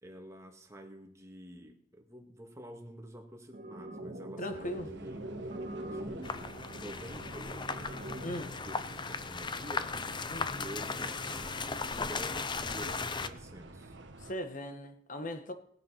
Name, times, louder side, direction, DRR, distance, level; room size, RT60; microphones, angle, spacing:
voice 1, 0.0-5.3 5.8-6.5 6.8-8.0 8.4-10.0 10.5-14.0, equal, 15° right, 2.1 m, -49 dB
sound 1, 3.5-8.5, right 1 dB, 50° right, 1.7 m, -43 dB
voice 2, 4.4-4.9 8.2-8.6 10.3-10.6 14.2-15.5, left 1 dB, 45° left, 1.6 m, -38 dB
sound 2, 4.5-14.3, right 2 dB, 70° right, 1.4 m, -49 dB
sound 3, 6.2-13.3, left 4 dB, 25° left, 0.6 m, -37 dB
18.5 x 7.8 x 5.8 m
head